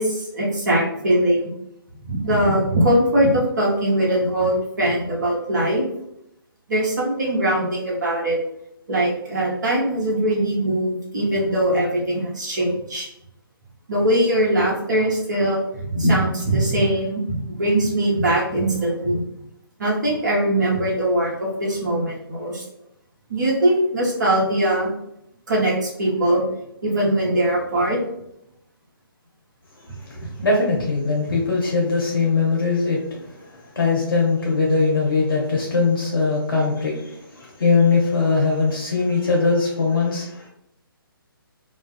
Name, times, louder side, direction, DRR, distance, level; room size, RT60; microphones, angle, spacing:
voice 1, 0.0-1.5 2.0-5.8 6.7-8.4 8.9-13.1 13.9-19.2 19.8-22.6 23.3-24.9 25.5-26.4 26.8-28.0, right 1 dB, 50° right, -4 dB, 0.8 m, -21 dB
voice 2, 30.0-40.5, left 4 dB, 65° left, -3 dB, 0.7 m, -21 dB
2.3 x 2.3 x 2.5 m, 0.78 s
figure-of-eight pair, 135°, 12 cm